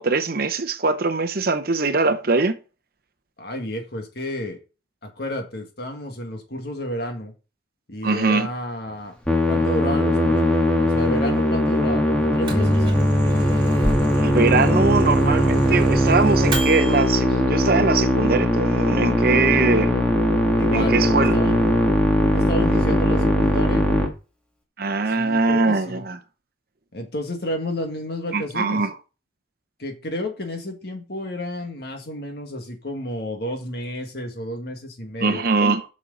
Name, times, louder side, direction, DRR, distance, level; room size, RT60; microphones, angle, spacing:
voice 1, 0.0-2.5 8.0-8.5 14.2-19.9 20.7-21.4 24.8-26.2 28.3-28.9 35.2-35.8, right 3 dB, 50° right, 0.8 m, -22 dB
voice 2, 3.4-4.6 5.0-7.3 7.9-9.1 9.4-10.5 10.8-12.7 20.6-21.7 22.2-23.8 25.1-26.0 26.9-28.8 29.8-35.4, left 1 dB, 55° left, 1.8 m, -31 dB
Musical instrument, 9.3-24.1, equal, 5° left, 1.6 m, -20 dB
Microwave oven, 12.2-17.0, equal, 25° right, 2.5 m, -24 dB
7.4 x 6.3 x 3.9 m
head